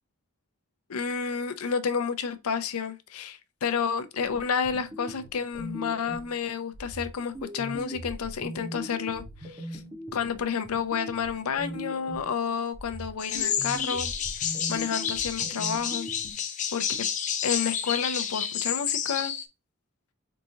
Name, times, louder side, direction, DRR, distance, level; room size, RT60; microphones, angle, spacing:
voice 1, 0.9-9.8 10.1-14.1 14.4-16.1 16.7-17.1 17.4-19.3, left 6 dB, 85° left, 0.5 m, -30 dB
sound 1, 4.2-6.4 6.7-12.4 12.7-16.3, right 1 dB, 20° right, 1.4 m, -40 dB
sound 2, 13.2-19.4, left 8 dB, 35° left, 0.4 m, -30 dB
3.8 x 3.7 x 2.8 m
head